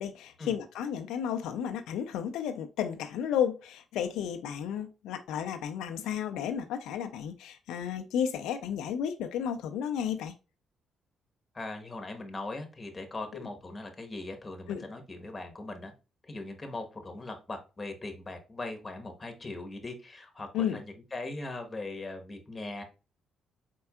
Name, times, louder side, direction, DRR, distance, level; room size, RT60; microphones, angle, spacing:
voice 1, 0.0-10.3 13.3-13.5 14.7-14.9 20.5-20.8, left 8 dB, 90° left, 0.4 m, -33 dB
voice 2, 11.5-15.9 16.3-22.8, left 2 dB, 25° left, 1.2 m, -40 dB
4.5 x 4.4 x 2.3 m
cardioid pair, 90°, 0 cm